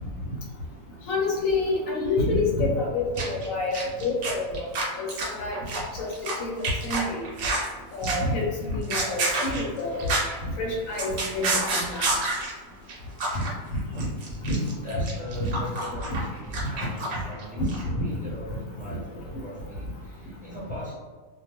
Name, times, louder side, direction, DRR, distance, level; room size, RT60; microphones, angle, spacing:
voice 1, 1.1-4.7 5.0-5.6 5.9-6.5 6.8-7.2 7.9-10.1 10.6-12.0 13.9-14.1 14.4-14.6 16.1-16.2 17.6-18.0, left 2 dB, 75° left, -2 dB, 1.0 m, -27 dB
sound 1, 3.2-3.5 3.7-6.3 6.6-7.7 8.0-8.4 8.7-10.4 10.7-12.5 12.9-13.0 13.2-13.5 13.8-17.4 17.7-17.8, right 2 dB, 75° right, 1.0 m, -28 dB
voice 2, 14.8-20.9, left 1 dB, 10° right, -9 dB, 0.4 m, -40 dB
2.4 x 2.2 x 2.8 m, 1.3 s
omnidirectional pair, 1.4 m